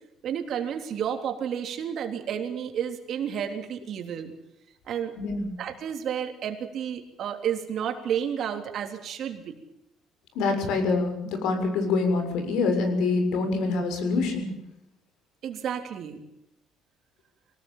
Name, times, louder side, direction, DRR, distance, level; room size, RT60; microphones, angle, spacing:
voice 1, 0.2-4.3 4.9-5.1 5.6-9.6 15.4-16.2, right 8 dB, 50° right, 5 dB, 3.4 m, -31 dB
voice 2, 5.2-5.5 10.3-14.5, left 3 dB, 80° left, 7 dB, 6.9 m, -25 dB
24.5 x 18.5 x 7.4 m, 0.84 s
cardioid pair, 145°, 0 cm